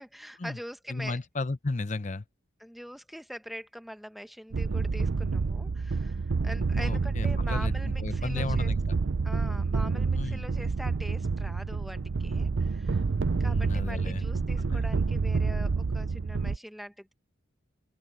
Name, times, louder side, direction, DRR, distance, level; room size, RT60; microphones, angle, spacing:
voice 1, 0.0-1.2 2.6-8.7 9.2-13.0 13.4-17.1, equal, ahead, 1.1 m, -43 dB
voice 2, 0.9-2.2 6.8-9.0 10.2-10.5 13.4-14.3 14.6-14.9, left 3 dB, 40° left, 0.7 m, -34 dB
sound 1, 4.5-16.6, right 4 dB, 80° right, 0.6 m, -28 dB
open air
head